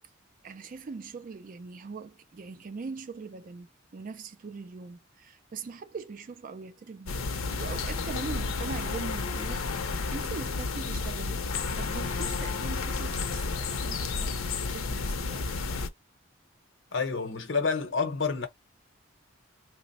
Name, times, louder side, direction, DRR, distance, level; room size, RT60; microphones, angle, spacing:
voice 1, 0.4-3.7 3.9-11.5 11.8-15.4, right 4 dB, 40° right, 0.3 m, -41 dB
sound 1, 7.1-15.9, left 4 dB, 90° left, 0.6 m, -31 dB
voice 2, 16.9-18.5, left 5 dB, 65° left, 0.8 m, -28 dB
3.0 x 2.0 x 4.0 m
head